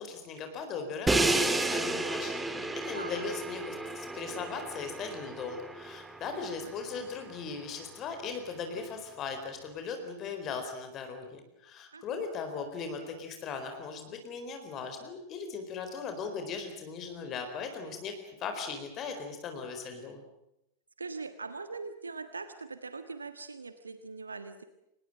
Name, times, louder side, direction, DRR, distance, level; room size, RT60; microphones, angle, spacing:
voice 1, 0.0-18.1 18.4-20.2, left 5 dB, 35° left, 6 dB, 4.5 m, -38 dB
Crash cymbal, 1.1-7.0, right 2 dB, 10° right, 2.2 m, -32 dB
voice 2, 2.9-3.2 7.0-7.1 11.9-12.2 21.0-24.6, right 4 dB, 75° right, 10 dB, 1.6 m, -41 dB
26.5 x 20.0 x 8.9 m, 0.85 s
figure-of-eight pair, 90°, 0 cm